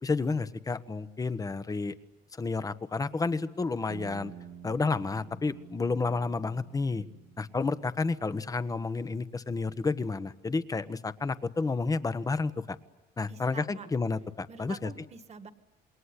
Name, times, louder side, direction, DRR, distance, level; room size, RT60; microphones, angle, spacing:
voice 1, 0.0-1.9 2.4-4.3 4.6-7.0 7.4-12.8 13.2-14.9, left 4 dB, 20° left, 13 dB, 1.2 m, -30 dB
sound 1, 3.9-8.6, right 8 dB, 65° right, 1.6 m, -49 dB
voice 2, 13.3-13.9 14.5-15.5, right 5 dB, 40° right, 10 dB, 1.8 m, -46 dB
27.5 x 21.5 x 9.9 m, 1.1 s
cardioid pair, 110°, 17 cm